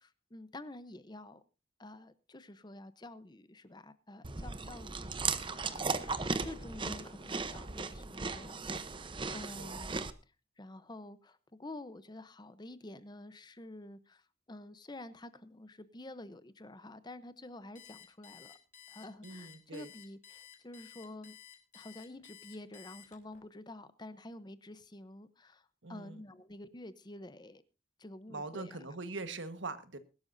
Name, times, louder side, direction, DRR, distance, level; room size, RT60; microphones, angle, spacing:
voice 1, 0.0-1.4 1.8-8.7 9.3-10.1 10.6-18.6 18.9-21.4 21.7-27.6 28.0-28.8, left 1 dB, 25° left, 0.8 m, -49 dB
Chewing mastication, 4.2-10.1, right 4 dB, 25° right, 0.8 m, -37 dB
voice 2, 9.2-9.7 19.2-19.9 25.8-26.2 28.3-30.0, right 3 dB, 85° right, 1.5 m, -42 dB
Alarm, 17.7-23.4, left 10 dB, 45° left, 3.4 m, -54 dB
21.5 x 12.5 x 2.7 m
head